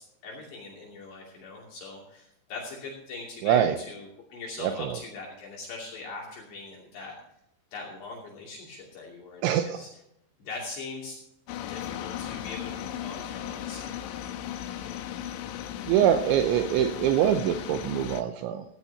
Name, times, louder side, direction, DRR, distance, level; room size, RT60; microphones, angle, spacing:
voice 1, 0.0-7.1 7.7-9.9 10.4-11.2 11.7-14.0, left 3 dB, 65° left, -3 dB, 4.8 m, -41 dB
voice 2, 3.4-3.8 4.6-5.0 9.4-9.9 15.9-18.6, right 10 dB, 80° right, 7 dB, 3.0 m, -24 dB
sound 1, 11.5-18.2, left 10 dB, 85° left, 3.5 m, -36 dB
15.5 x 15.5 x 2.9 m, 0.78 s
omnidirectional pair, 5.5 m